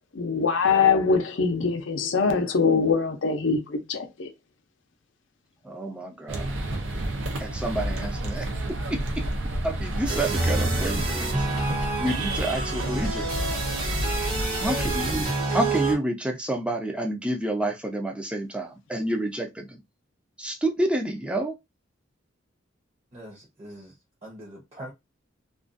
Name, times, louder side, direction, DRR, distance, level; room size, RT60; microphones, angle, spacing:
voice 1, 0.1-4.3, left 5 dB, 75° left, 0.5 m, -23 dB
voice 2, 5.6-6.6 7.4-8.5 8.9-9.3 9.6-11.5 12.0-13.3 14.6-19.8 20.4-21.6, right 1 dB, 5° right, 0.4 m, -29 dB
sound 1, 6.3-15.3, right 1 dB, 75° right, 0.6 m, -30 dB
sound 2, 10.1-15.9, right 3 dB, 50° right, 1.1 m, -28 dB
voice 3, 14.6-15.0 23.1-23.9 24.2-24.9, equal, 35° right, 0.8 m, -38 dB
2.4 x 2.3 x 2.5 m
head